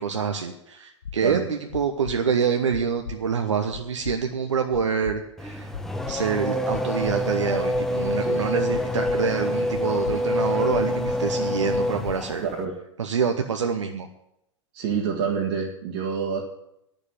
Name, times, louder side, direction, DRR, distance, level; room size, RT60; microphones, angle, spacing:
voice 1, 0.0-5.7 6.1-12.4 13.0-14.1, right 6 dB, 75° right, 5 dB, 0.8 m, -26 dB
sound 1, 1.0-1.1 1.7-2.1 2.7-3.2 3.7-4.1 4.7-5.1 5.7-6.1 6.7-7.2 7.7-8.2 8.7-9.2 9.7-10.2 10.7-11.2 11.7-12.2, left 7 dB, 75° left, 1.0 m, -36 dB
Race car auto racing / Accelerating revving vroom, 5.4-12.6, left 1 dB, 5° left, 0.9 m, -26 dB
voice 2, 12.4-12.8 14.7-16.4, right 6 dB, 50° right, -2 dB, 1.7 m, -27 dB
9.8 x 6.9 x 9.0 m, 0.81 s
figure-of-eight pair, 95°, 16 cm